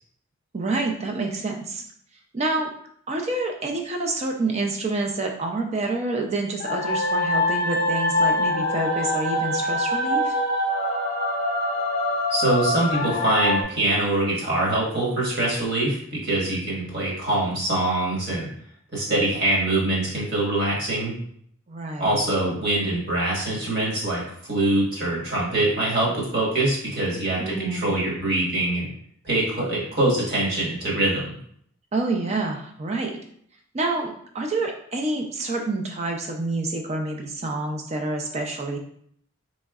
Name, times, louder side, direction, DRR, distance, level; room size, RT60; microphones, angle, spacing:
voice 1, 0.5-1.8 2.3-2.7 3.1-10.4 21.7-22.2 27.4-28.0 31.9-33.1 33.7-38.8, right 2 dB, 30° right, 3 dB, 0.4 m, -28 dB
sound 1, 6.6-13.6, left 1 dB, 45° left, 0.4 m, -24 dB
voice 2, 12.3-18.5 18.9-21.1 22.0-28.9 29.2-31.3, right 1 dB, 50° right, -5 dB, 1.2 m, -24 dB
3.7 x 3.1 x 2.3 m, 0.65 s
head